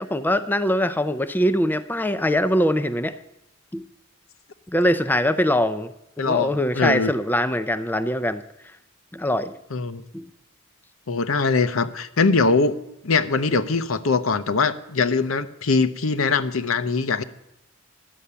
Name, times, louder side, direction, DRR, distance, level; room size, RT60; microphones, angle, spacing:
voice 1, 0.0-3.1 3.7-3.8 4.7-5.9 6.2-8.4 9.1-9.6 10.1-10.2, equal, 10° left, 11 dB, 0.4 m, -22 dB
voice 2, 6.2-7.1 9.7-10.0 11.1-12.8 13.0-17.2, left 4 dB, 80° left, 11 dB, 0.8 m, -22 dB
11.5 x 8.6 x 6.8 m, 0.86 s
head